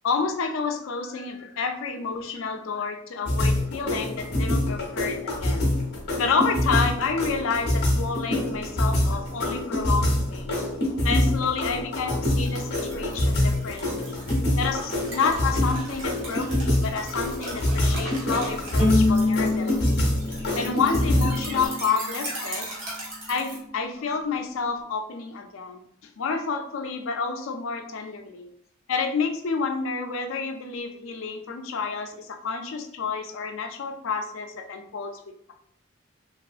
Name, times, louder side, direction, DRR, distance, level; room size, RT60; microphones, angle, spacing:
voice 1, 0.0-5.7 6.2-10.6 11.0-14.2 14.6-20.0 20.6-22.7 23.3-25.8 26.2-28.5 28.9-35.1, left 5 dB, 70° left, 5 dB, 0.4 m, -29 dB
sound 1, 3.3-21.7, left 1 dB, 50° left, 0.8 m, -25 dB
sound 2, 12.3-23.6, right 1 dB, 65° right, 1.2 m, -39 dB
Bowed string instrument, 18.8-22.0, left 2 dB, 5° right, 0.8 m, -26 dB
3.2 x 2.4 x 2.4 m, 0.69 s
head